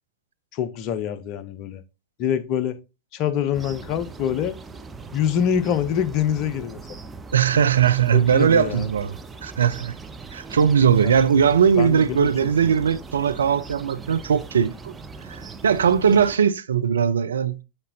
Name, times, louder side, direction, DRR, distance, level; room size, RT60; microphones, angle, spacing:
voice 1, 0.5-1.8 2.2-2.8 3.1-4.6 5.1-6.8 8.1-8.9 11.0-11.2 11.8-12.3 12.6-12.7, left 9 dB, 40° left, 0.6 m, -25 dB
sound 1, 3.5-16.4, right 4 dB, 15° right, 0.6 m, -40 dB
voice 2, 7.3-9.9 10.3-14.9 15.3-17.6, right 7 dB, 70° right, 0.4 m, -20 dB
8.8 x 4.2 x 2.6 m
figure-of-eight pair, 90°, 0 cm